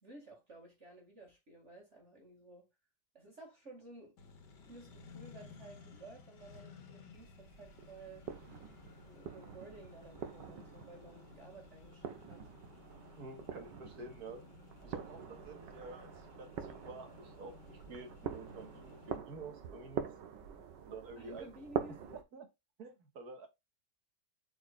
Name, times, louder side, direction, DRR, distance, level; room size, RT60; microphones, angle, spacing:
voice 1, 0.0-2.7 3.1-4.2 4.6-8.3 9.1-12.5 21.2-22.0, right 2 dB, 40° right, 2.4 m, -54 dB
Accelerating revving vroom, 4.2-19.2, left 5 dB, 80° left, 2.0 m, -57 dB
sound 1, 7.1-22.2, right 8 dB, 85° right, 1.7 m, -45 dB
voice 2, 13.2-14.4 14.8-20.1 20.8-21.5 21.9-22.5 22.8-23.5, right 3 dB, 60° right, 2.0 m, -49 dB
8.1 x 4.8 x 2.4 m
omnidirectional pair, 1.9 m